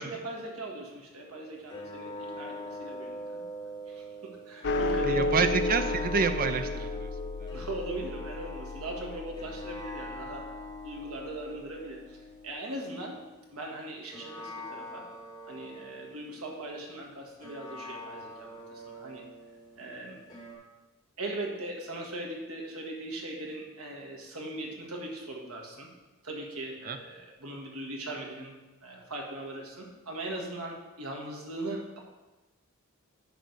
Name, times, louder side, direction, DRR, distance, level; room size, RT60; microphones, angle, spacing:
voice 1, 0.0-3.4 3.9-5.3 7.5-10.6 10.8-13.2 13.5-15.1 15.5-19.2 19.8-20.2 21.2-25.9 26.2-28.5 28.8-32.0, right 1 dB, 80° right, 0 dB, 1.6 m, -40 dB
sound 1, 1.7-4.7 5.3-13.7 14.1-16.6 17.4-20.6, left 1 dB, 20° left, 2.1 m, -43 dB
sound 2, 4.6-11.2, left 2 dB, 50° left, 0.5 m, -33 dB
voice 2, 5.0-7.1 7.4-7.5 26.9-27.0, right 5 dB, 40° right, 9 dB, 0.6 m, -28 dB
10.0 x 3.4 x 6.6 m, 1.2 s
head